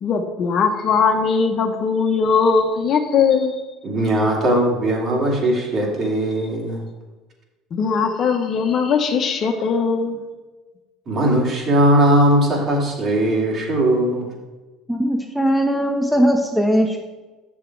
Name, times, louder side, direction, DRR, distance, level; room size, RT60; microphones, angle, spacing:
voice 1, 0.0-3.6 7.7-10.2, left 5 dB, 50° left, 4 dB, 1.1 m, -19 dB
voice 2, 3.8-6.9 11.1-14.3, right 1 dB, 45° right, -1 dB, 2.7 m, -19 dB
voice 3, 14.9-17.0, equal, ahead, 1 dB, 1.0 m, -19 dB
7.2 x 6.9 x 4.7 m, 1.2 s
hypercardioid pair, 75°, 0 cm